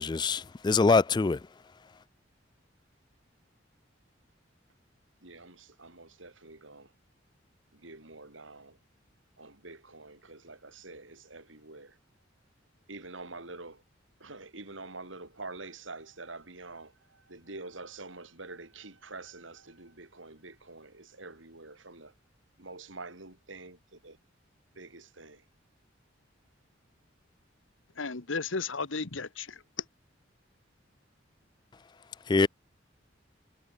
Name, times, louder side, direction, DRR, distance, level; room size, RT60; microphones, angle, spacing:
voice 1, 0.0-1.4 32.3-32.5, left 4 dB, 20° left, 0.3 m, -24 dB
voice 2, 5.2-6.9 7.7-8.8 9.4-12.0 12.9-13.8 14.2-22.1 22.6-24.2 24.7-25.4, right 3 dB, 80° right, 4.4 m, -46 dB
voice 3, 28.0-29.8, left 4 dB, 80° left, 1.4 m, -34 dB
head